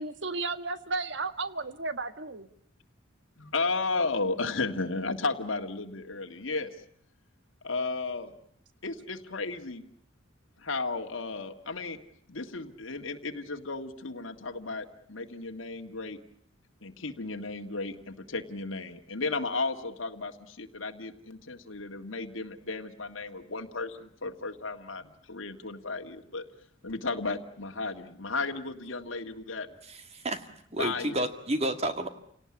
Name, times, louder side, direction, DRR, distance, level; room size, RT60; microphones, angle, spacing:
voice 1, 0.0-2.5, right 3 dB, 65° right, 12 dB, 1.6 m, -33 dB
voice 2, 3.4-6.7 7.6-8.3 8.8-9.9 10.6-12.0 12.3-16.2 16.8-26.5 26.8-29.7 30.8-31.2, left 3 dB, 90° left, 4 dB, 1.9 m, -34 dB
voice 3, 29.9-30.5 30.7-32.1, right 1 dB, 35° right, 8 dB, 2.1 m, -30 dB
28.5 x 18.0 x 9.8 m, 0.66 s
head